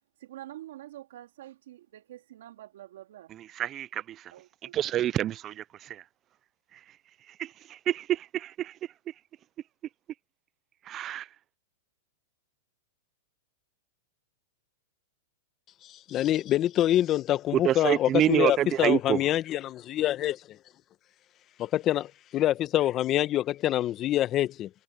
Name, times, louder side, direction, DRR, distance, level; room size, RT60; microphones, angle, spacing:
voice 1, 0.2-3.3 4.3-4.7, right 14 dB, 70° right, 3.2 m, -46 dB
voice 2, 3.6-4.0 4.7-5.5 7.4-7.5 7.9-8.7 10.9-11.2 17.6-19.2, right 11 dB, 30° right, 0.5 m, -26 dB
voice 3, 15.8-20.6 21.6-24.7, left 13 dB, 30° left, 1.2 m, -26 dB
hypercardioid pair, 130°, 0 cm